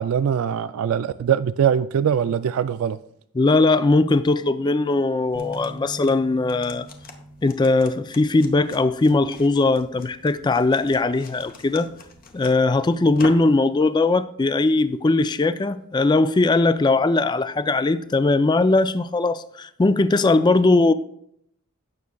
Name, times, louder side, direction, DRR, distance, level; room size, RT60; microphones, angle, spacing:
voice 1, 0.0-3.0, right 8 dB, 70° right, 0.3 m, -22 dB
voice 2, 3.4-6.9 7.4-11.9 12.3-20.9, left 3 dB, 20° left, 0.3 m, -19 dB
sound 1, 5.2-13.6, left 3 dB, 40° left, 0.8 m, -44 dB
sound 2, 5.3-11.6, right 1 dB, 30° right, 0.6 m, -45 dB
16.0 x 6.2 x 2.3 m
head